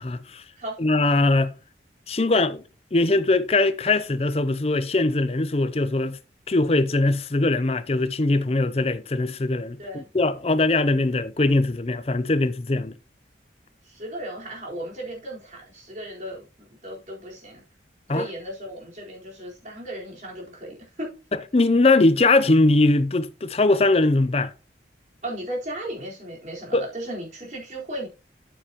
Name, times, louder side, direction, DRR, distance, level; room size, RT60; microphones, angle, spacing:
voice 1, 0.0-0.4 0.8-1.5 2.1-2.6 2.9-6.2 6.5-12.9 18.1-18.3 21.5-24.5 26.7-26.9, left 2 dB, 35° left, 0.5 m, -21 dB
voice 2, 13.8-16.4 16.8-17.6 18.1-21.2 25.2-28.1, right 1 dB, 40° right, 4.3 m, -35 dB
8.8 x 8.7 x 3.0 m
head